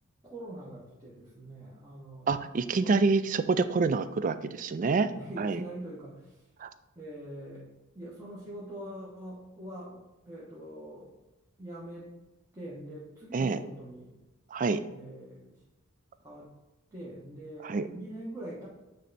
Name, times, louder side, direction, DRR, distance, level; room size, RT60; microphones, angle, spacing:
voice 1, 0.2-2.3 2.7-3.0 3.7-4.0 5.1-6.5 6.9-7.7 7.9-11.1 11.6-12.3 12.5-14.1 14.9-15.6 16.2-16.5 16.9-18.7, right 1 dB, 15° right, -8 dB, 1.2 m, -43 dB
voice 2, 2.3-5.1 5.4-5.6 6.6-6.7 13.3-13.6 14.5-14.8 17.6-17.9, right 4 dB, 40° right, 12 dB, 0.3 m, -27 dB
9.2 x 3.3 x 4.1 m, 1.0 s
head